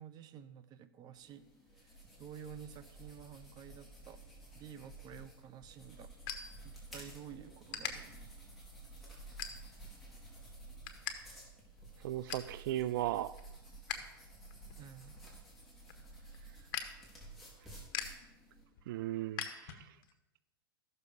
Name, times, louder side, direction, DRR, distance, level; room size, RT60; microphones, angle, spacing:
voice 1, 0.0-1.4 1.8-4.2 4.5-6.1 6.6-8.3 14.8-15.2, right 8 dB, 35° right, 12 dB, 0.9 m, -51 dB
sound 1, 1.1-18.6, right 2 dB, ahead, 4.2 m, -53 dB
sound 2, 5.2-7.2 7.7-7.9 8.5-8.7 9.4-9.9 10.3-11.2 11.4-11.5 11.9-12.5 13.0-14.1 14.4-20.1, left 8 dB, 60° left, 1.6 m, -44 dB
voice 2, 12.0-13.3 18.9-19.9, right 13 dB, 65° right, 17 dB, 0.4 m, -36 dB
15.0 x 6.6 x 5.2 m, 1.0 s
hypercardioid pair, 120°, 12 cm